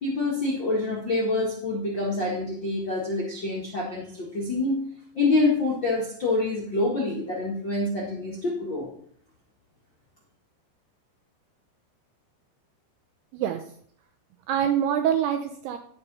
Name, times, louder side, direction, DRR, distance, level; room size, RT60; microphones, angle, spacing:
voice 1, 0.0-4.8 5.1-8.9, left 2 dB, 55° left, -4 dB, 1.2 m, -26 dB
voice 2, 13.3-13.7 14.5-15.8, right 9 dB, 85° right, 7 dB, 2.3 m, -25 dB
11.5 x 7.0 x 5.4 m, 0.63 s
omnidirectional pair, 5.3 m